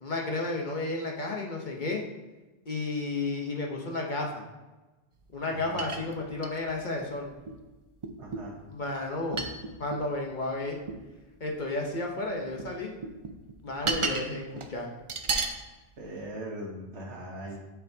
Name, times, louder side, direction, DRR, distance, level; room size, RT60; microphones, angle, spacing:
voice 1, 0.0-2.0 2.7-4.4 5.3-7.3 8.7-9.4 9.8-10.8 11.4-12.9 13.6-14.9, left 2 dB, 45° left, 0 dB, 1.0 m, -32 dB
sound 1, 5.4-5.5 5.8-6.9 7.5-7.6 8.0-8.5 9.3-10.1 10.9-11.0 12.2-12.7 13.0-14.3 14.5-14.7 15.1-15.6 16.2-16.3, right 4 dB, 45° right, 0.4 m, -33 dB
voice 2, 5.5-5.8 8.2-8.6 16.0-17.6, right 1 dB, 85° right, -3 dB, 1.3 m, -40 dB
10.0 x 4.6 x 2.7 m, 1.2 s
omnidirectional pair, 1.1 m